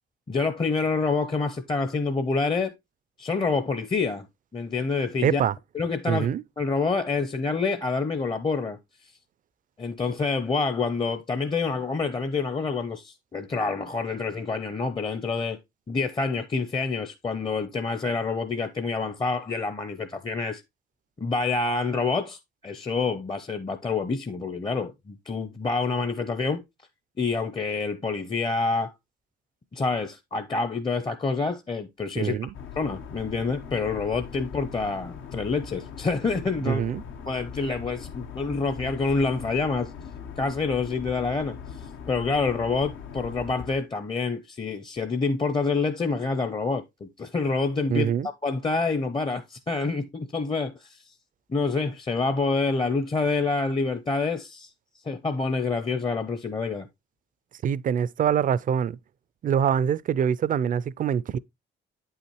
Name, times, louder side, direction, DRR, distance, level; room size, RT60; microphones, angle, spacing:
voice 1, 0.3-2.7 3.2-4.3 4.5-5.4 5.7-6.3 6.6-8.8 9.8-15.6 15.9-20.6 21.2-26.6 27.2-28.9 29.7-32.4 32.8-36.8 37.3-39.9 40.4-41.6 42.1-48.1 48.4-51.1 51.5-54.7 55.1-56.9, left 4 dB, 25° left, 0.6 m, -27 dB
voice 2, 5.2-5.5 6.1-6.4 32.2-32.5 36.7-37.0 47.9-48.3 57.6-59.0 59.4-61.4, right 8 dB, 45° right, 0.4 m, -24 dB
sound 1, 32.5-43.8, left 7 dB, 80° left, 0.8 m, -40 dB
8.3 x 5.6 x 2.9 m
cardioid pair, 90°, 20 cm